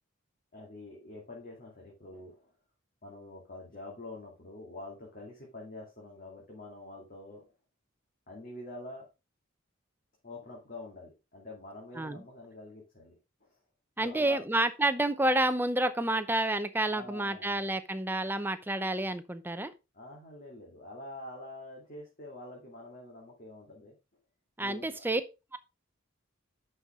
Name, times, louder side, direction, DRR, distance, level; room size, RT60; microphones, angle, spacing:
voice 1, 0.5-2.5 3.0-7.5 8.3-9.1 10.2-13.1 13.4-13.6 14.0-14.4 16.9-17.6 19.9-24.0 24.6-25.1, left 2 dB, 40° left, 2.3 m, -46 dB
voice 2, 14.0-19.7 24.6-25.2 25.5-25.6, right 1 dB, 10° right, 0.6 m, -29 dB
9.7 x 5.7 x 3.6 m
head